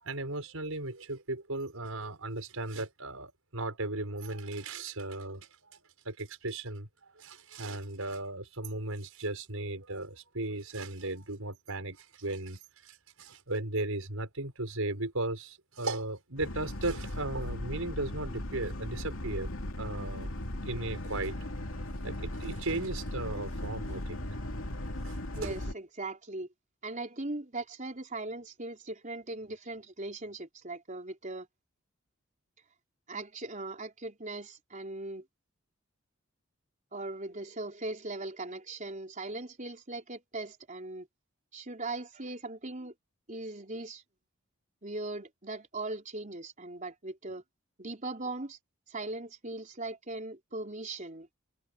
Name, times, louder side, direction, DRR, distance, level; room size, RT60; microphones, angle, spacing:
voice 1, 0.0-5.8 6.0-6.9 7.2-19.5 19.8-20.3 20.7-21.4 22.0-24.2 25.0-25.6, right 2 dB, 85° right, 5.7 m, -36 dB
Boat Water vehicle, 16.4-25.7, left 1 dB, 75° left, 2.6 m, -37 dB
voice 2, 25.4-26.5 26.8-31.5 33.1-35.2 36.9-41.1 41.5-42.9 43.3-44.0 44.8-47.4 47.8-48.6 48.9-51.3, right 2 dB, 35° right, 4.3 m, -39 dB
head